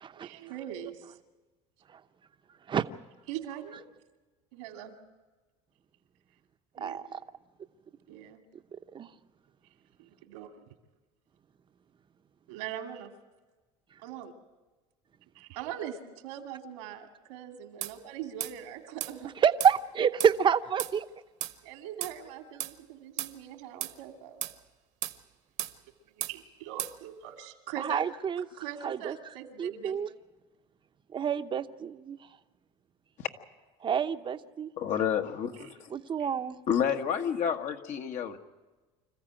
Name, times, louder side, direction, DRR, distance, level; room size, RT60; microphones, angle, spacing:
voice 1, 0.2-1.1 3.3-3.8 4.5-4.9 6.8-7.0 8.1-8.4 10.1-10.5 12.5-13.1 14.0-14.3 15.3-19.3 21.6-24.4 26.2-28.1 28.6-30.0 36.2-36.4, right 10 dB, 85° right, 2.4 m, -42 dB
voice 2, 6.8-7.2 8.9-9.1 19.4-21.1 27.8-28.4 28.8-29.1 29.6-30.1 31.1-32.2 33.8-34.7 35.9-36.6, right 7 dB, 30° right, 0.9 m, -28 dB
sound 1, 17.8-18.0 18.4-18.6 19.0-19.1 19.6-19.8 20.2-20.4 20.8-20.9 21.4-21.6 22.0-22.2 22.6-22.7 23.2-23.3 23.8-24.0 24.4-24.6 25.0-25.2 25.6-25.8 26.2-26.4 26.8-27.0, right 12 dB, 55° right, 1.2 m, -35 dB
voice 3, 34.8-35.9 36.7-38.4, left 8 dB, 55° left, 1.5 m, -29 dB
26.0 x 14.5 x 9.0 m
supercardioid pair, 100°, 15 cm